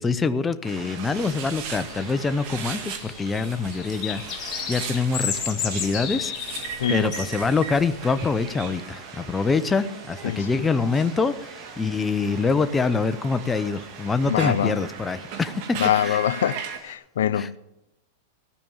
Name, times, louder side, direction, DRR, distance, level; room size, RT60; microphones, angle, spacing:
voice 1, 0.0-4.4 4.7-6.3 6.9-16.2 17.3-17.5, left 4 dB, 15° left, 0.6 m, -25 dB
sound 1, 0.6-16.8, right 7 dB, 55° right, 1.6 m, -38 dB
sound 2, 0.7-17.0, right 1 dB, 15° right, 2.5 m, -50 dB
sound 3, 1.1-8.5, left 8 dB, 30° left, 2.0 m, -34 dB
voice 2, 6.8-7.1 10.2-10.7 14.3-14.8 15.8-17.6, left 10 dB, 85° left, 0.4 m, -24 dB
15.5 x 5.2 x 7.1 m
supercardioid pair, 135°, 0 cm